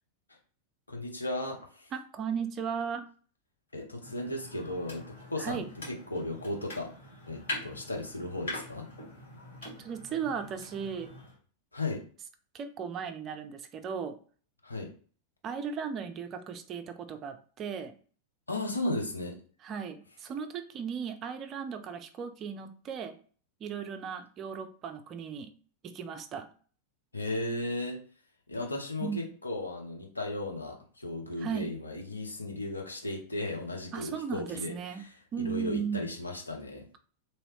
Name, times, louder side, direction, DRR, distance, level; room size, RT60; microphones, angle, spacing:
voice 1, 0.9-1.9 3.7-6.9 7.3-8.9 11.7-12.0 14.6-14.9 18.5-19.3 27.1-28.0 28.5-36.9, left 2 dB, 80° left, 1 dB, 0.8 m, -35 dB
voice 2, 1.9-3.0 5.4-5.7 9.6-11.1 12.5-14.2 15.4-17.9 19.6-23.2 23.6-25.5 25.8-26.5 29.0-29.3 31.4-31.7 33.9-35.0 35.3-36.1, right 7 dB, 30° right, 8 dB, 0.4 m, -36 dB
sound 1, 4.0-11.4, left 2 dB, 60° left, 1.8 m, -43 dB
3.0 x 2.7 x 3.1 m, 0.42 s
figure-of-eight pair, 90°, 0 cm